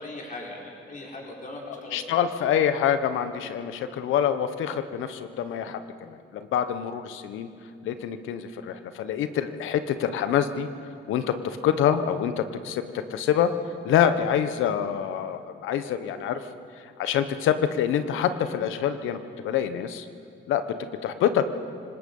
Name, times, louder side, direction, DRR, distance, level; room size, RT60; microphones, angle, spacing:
voice 1, 0.0-2.2, left 2 dB, 40° left, -2 dB, 4.8 m, -39 dB
voice 2, 1.9-7.5 7.8-10.7 11.1-12.8 13.1-13.5 13.8-16.4 17.0-19.2 19.4-20.1 20.5-20.6 21.0-21.5, left 9 dB, 90° left, 10 dB, 1.2 m, -26 dB
26.0 x 19.0 x 5.6 m, 2.5 s
cardioid pair, 90°, 20 cm